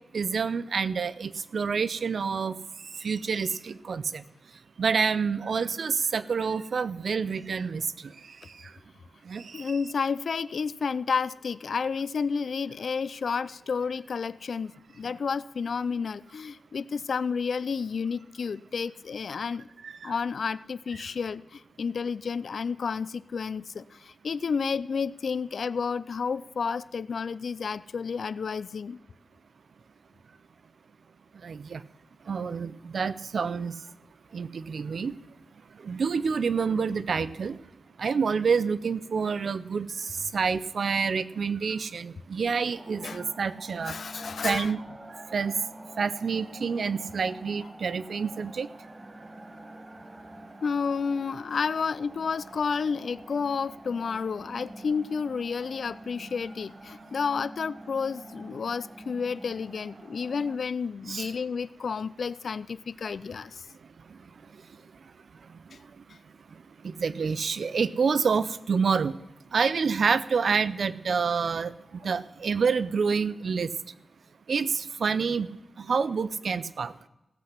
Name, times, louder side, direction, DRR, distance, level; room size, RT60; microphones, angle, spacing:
voice 1, 0.1-2.6 3.0-4.2 4.8-7.8 9.3-9.6 19.8-20.1 31.4-31.8 32.3-33.7 34.3-35.1 35.8-37.6 38.0-39.9 40.3-43.9 44.4-44.8 45.3-45.5 46.0-48.7 61.1-61.3 66.8-69.1 69.5-71.7 72.0-73.7 74.5-75.5 75.8-76.9, right 5 dB, 75° right, 16 dB, 0.6 m, -27 dB
voice 2, 9.5-19.7 20.0-29.0 43.0-43.2 43.8-44.7 50.6-63.6 66.1-66.2, left 5 dB, 70° left, 17 dB, 0.4 m, -31 dB
sound 1, 42.7-60.6, right 1 dB, 30° right, 1.7 m, -47 dB
16.0 x 8.0 x 5.8 m, 0.96 s
wide cardioid pair, 105°, 0 cm